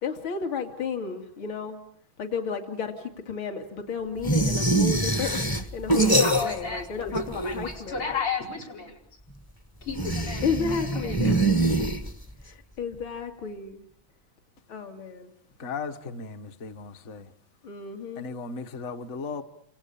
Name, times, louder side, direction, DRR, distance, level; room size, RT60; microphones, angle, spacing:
voice 1, 0.0-1.8 2.2-8.1 10.4-11.4 12.4-13.9 14.7-15.3 17.6-18.3, left 6 dB, 65° left, 3.1 m, -33 dB
sound 1, 4.2-6.8 7.1-7.9 9.9-12.4, right 2 dB, 15° left, 0.8 m, -24 dB
voice 2, 6.2-7.1 7.4-9.0 9.8-10.4 11.0-11.1, left 5 dB, 90° left, 5.8 m, -32 dB
voice 3, 15.6-17.3 18.2-19.4, left 4 dB, 40° left, 1.3 m, -36 dB
29.5 x 27.0 x 7.1 m
omnidirectional pair, 2.3 m